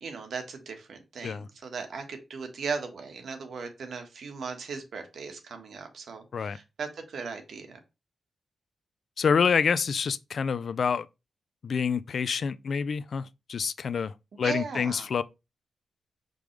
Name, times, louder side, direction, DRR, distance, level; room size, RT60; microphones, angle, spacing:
voice 1, 0.0-7.8 14.4-15.1, right 5 dB, 65° right, 1.5 m, -37 dB
voice 2, 9.2-11.1 11.6-15.2, left 6 dB, 55° left, 0.4 m, -27 dB
6.2 x 5.2 x 3.3 m
wide cardioid pair, 135°, 0 cm